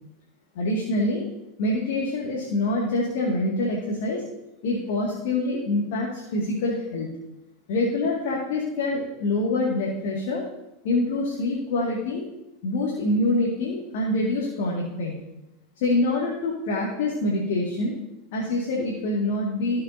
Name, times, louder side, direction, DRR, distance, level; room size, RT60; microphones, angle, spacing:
voice 1, 0.6-1.2 1.6-4.2 4.6-7.1 7.7-10.4 10.8-12.2 12.6-15.2 15.8-18.0 18.3-19.8, left 2 dB, 60° left, -3 dB, 2.1 m, -25 dB
16.0 x 6.8 x 2.8 m, 0.91 s
figure-of-eight pair, 80°, 0 cm